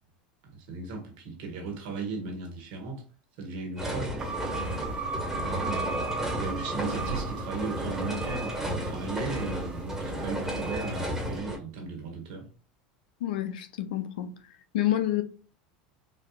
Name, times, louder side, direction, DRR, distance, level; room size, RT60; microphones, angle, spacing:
voice 1, 0.5-3.0 3.4-4.2 5.4-6.1 6.4-12.5, right 3 dB, 70° right, 1.5 m, -36 dB
sound 1, 3.8-11.6, right 1 dB, 10° right, 1.6 m, -33 dB
sound 2, 4.2-10.6, right 4 dB, 30° right, 1.0 m, -37 dB
voice 2, 13.2-14.4 14.7-15.2, left 12 dB, 80° left, 0.5 m, -28 dB
4.1 x 2.7 x 2.4 m
hypercardioid pair, 100°, 5 cm